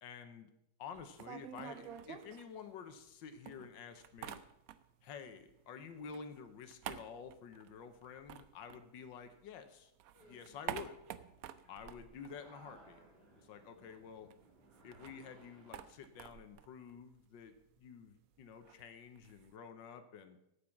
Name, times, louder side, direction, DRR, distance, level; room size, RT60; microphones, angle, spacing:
voice 1, 0.0-0.5 0.8-4.4 5.0-9.9 10.2-11.0 11.7-13.0 13.4-14.3 14.8-20.4, left 6 dB, 90° left, 8 dB, 1.6 m, -50 dB
sound 1, 0.9-3.1 3.5-5.1 5.4-9.5 9.8-13.1 13.4-13.5 13.7-19.5, right 10 dB, 70° right, 0.9 m, -50 dB
sound 2, 10.1-15.9, right 2 dB, 30° right, 2.9 m, -63 dB
8.7 x 8.4 x 7.1 m, 0.81 s
omnidirectional pair, 1.9 m